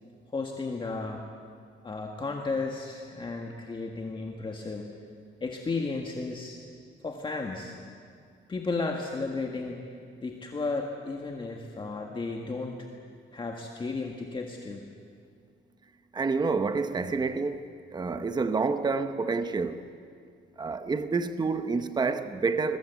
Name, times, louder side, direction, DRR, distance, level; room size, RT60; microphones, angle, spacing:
voice 1, 0.3-1.3 1.8-4.9 5.4-6.6 7.0-7.8 8.5-9.8 10.2-12.9 13.3-14.8, left 3 dB, 25° left, 1.7 m, -33 dB
voice 2, 16.1-19.9 20.6-22.8, right 4 dB, 20° right, 0.9 m, -28 dB
27.5 x 21.5 x 8.2 m
wide cardioid pair, 175°, 21 cm